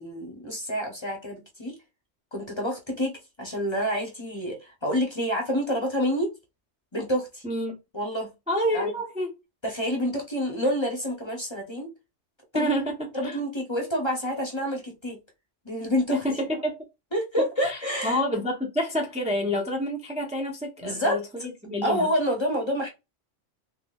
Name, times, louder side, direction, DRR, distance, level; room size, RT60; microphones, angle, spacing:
voice 1, 0.0-1.8 2.3-6.3 6.9-7.4 7.9-8.3 8.7-8.9 9.6-11.9 12.5-12.7 13.1-15.2 15.6-16.2 17.1-18.2 20.8-21.3 21.8-22.9, equal, 25° left, 0.8 m, -28 dB
voice 2, 8.5-9.3 12.5-13.0 13.2-13.4 16.1-16.7 17.6-22.1, equal, 10° right, 0.5 m, -28 dB
3.7 x 3.0 x 2.3 m
omnidirectional pair, 1.3 m